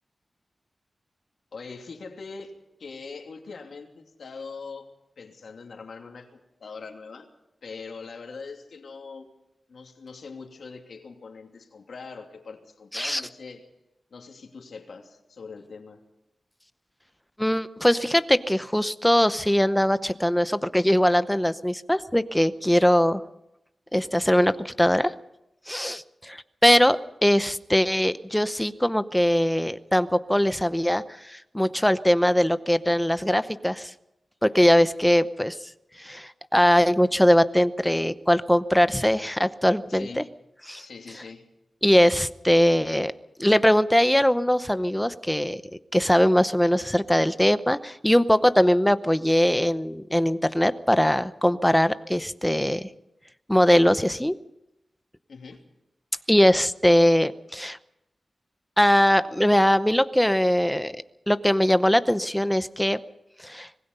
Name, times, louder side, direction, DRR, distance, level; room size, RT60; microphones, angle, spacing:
voice 1, 1.5-2.5 2.8-4.9 5.2-7.3 7.6-9.3 9.7-13.7 14.1-16.0 39.9-40.3 40.8-41.5 55.3-55.6, left 4 dB, 75° left, 2 dB, 2.9 m, -42 dB
voice 2, 17.4-23.2 23.9-25.1 25.7-33.9 34.4-35.7 36.0-40.2 40.7-40.9 41.8-43.1 43.4-45.6 45.9-52.9 53.5-54.4 56.3-57.8 58.8-63.0 63.4-63.7, equal, 5° left, 12 dB, 0.8 m, -21 dB
25.5 x 19.5 x 5.5 m, 0.87 s
wide cardioid pair, 140°, 0 cm